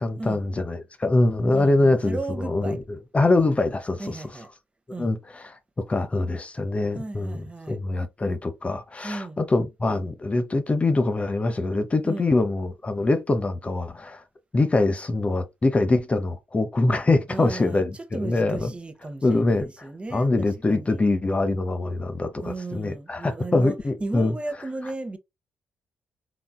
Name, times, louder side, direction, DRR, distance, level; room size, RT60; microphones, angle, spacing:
voice 1, 0.0-2.8 3.1-4.3 5.0-5.6 5.9-14.2 14.5-18.7 19.2-24.4, left 2 dB, 25° left, 0.7 m, -24 dB
voice 2, 1.5-2.8 4.0-4.5 4.9-5.1 6.9-7.8 9.0-9.4 12.0-12.3 17.3-21.0 22.4-23.8 24.0-25.2, right 2 dB, 25° right, 0.8 m, -35 dB
4.0 x 3.4 x 2.2 m
hypercardioid pair, 40°, 5 cm